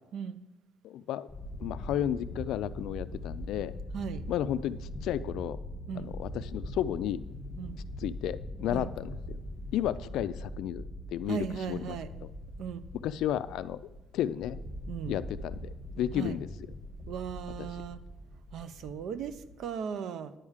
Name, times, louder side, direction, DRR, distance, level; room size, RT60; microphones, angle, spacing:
voice 1, 0.8-1.3 1.6-3.7 4.3-5.6 6.0-7.2 8.0-9.4 9.7-12.0 13.0-13.8 14.1-14.6 15.1-16.5 17.6-17.7, left 11 dB, 80° left, 15 dB, 0.3 m, -33 dB
sound 1, 1.3-19.7, left 1 dB, 10° left, 1.3 m, -42 dB
voice 2, 11.3-12.1 12.6-12.8 14.9-15.2 16.1-16.4 17.1-18.0 18.5-20.3, right 7 dB, 60° right, 13 dB, 0.5 m, -37 dB
10.0 x 4.9 x 7.2 m, 1.0 s
cardioid pair, 170°, 0 cm